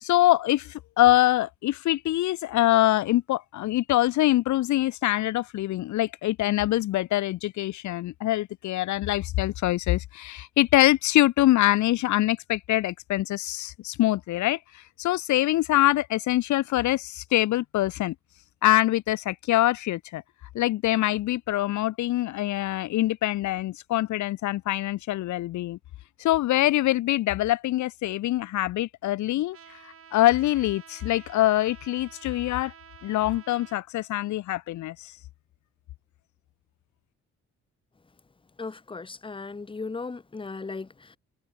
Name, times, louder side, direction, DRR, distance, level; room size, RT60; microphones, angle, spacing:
voice 1, 0.0-18.1 18.6-20.2 20.5-25.8 26.2-32.7 33.0-35.2, left 15 dB, 70° left, 0.6 m, -24 dB
Trumpet, 29.5-33.8, right 7 dB, 50° right, 2.8 m, -50 dB
voice 2, 38.6-41.2, left 4 dB, 15° left, 1.0 m, -37 dB
cardioid pair, 90°, 30 cm